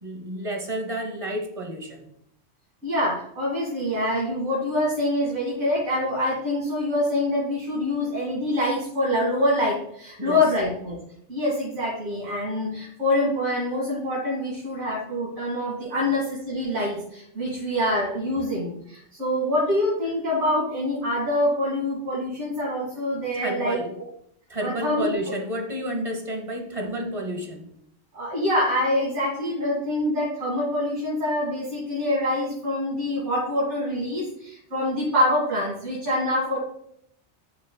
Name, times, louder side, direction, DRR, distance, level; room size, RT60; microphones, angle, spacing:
voice 1, 0.0-2.1 10.2-10.4 23.3-23.9 24.5-27.7, right 1 dB, 30° right, 3 dB, 1.1 m, -31 dB
voice 2, 2.8-11.0 11.3-23.8 24.6-25.4 28.1-36.6, left 1 dB, 90° right, -8 dB, 2.6 m, -25 dB
11.5 x 4.1 x 2.3 m, 0.71 s
omnidirectional pair, 1.2 m